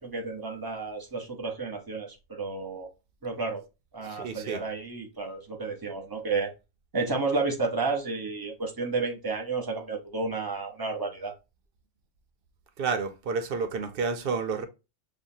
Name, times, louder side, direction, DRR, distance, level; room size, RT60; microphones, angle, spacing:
voice 1, 0.0-2.9 3.2-3.6 3.9-6.5 6.9-11.3, right 3 dB, 20° right, 0.8 m, -31 dB
voice 2, 4.1-4.6 12.8-14.7, right 5 dB, 60° right, 0.7 m, -30 dB
5.9 x 2.3 x 2.7 m
omnidirectional pair, 1.2 m